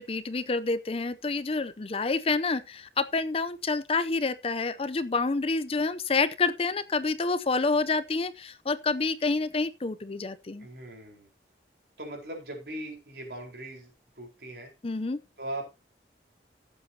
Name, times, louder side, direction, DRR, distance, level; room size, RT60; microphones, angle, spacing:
voice 1, 0.0-10.7 14.8-15.2, left 3 dB, 35° left, 0.5 m, -28 dB
voice 2, 10.6-11.3 12.0-14.7 15.4-15.7, right 1 dB, 65° right, 4.4 m, -39 dB
15.5 x 8.0 x 2.8 m
head